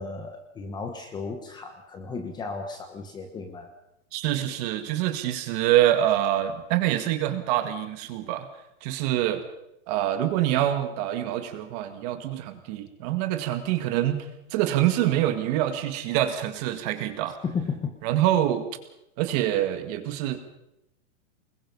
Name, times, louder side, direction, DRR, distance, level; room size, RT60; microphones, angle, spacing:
voice 1, 0.0-3.7 17.4-17.9, left 5 dB, 10° left, 5 dB, 1.2 m, -34 dB
voice 2, 4.1-8.5 8.8-9.4 9.9-14.3 14.5-17.4 18.0-18.7 19.2-20.4, right 12 dB, 35° right, 8 dB, 2.0 m, -25 dB
24.5 x 21.5 x 5.5 m, 0.85 s
supercardioid pair, 170°, 36 cm